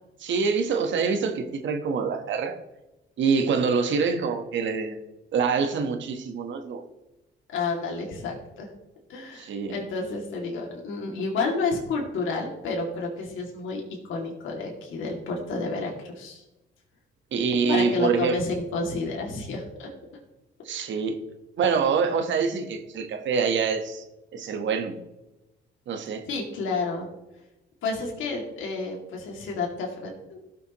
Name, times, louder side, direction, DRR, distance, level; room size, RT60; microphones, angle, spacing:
voice 1, 0.2-2.6 3.2-5.0 5.3-6.8 9.3-9.8 17.3-18.4 20.6-21.2 21.6-24.0 24.3-25.0 25.9-26.3, right 5 dB, 70° right, 6 dB, 1.3 m, -25 dB
voice 2, 7.5-8.7 9.1-13.8 14.1-16.4 17.7-19.9 20.8-20.9 26.3-27.1 27.8-30.4, left 3 dB, 80° left, -1 dB, 2.4 m, -30 dB
16.5 x 6.7 x 3.0 m, 0.99 s
cardioid pair, 90°, 20 cm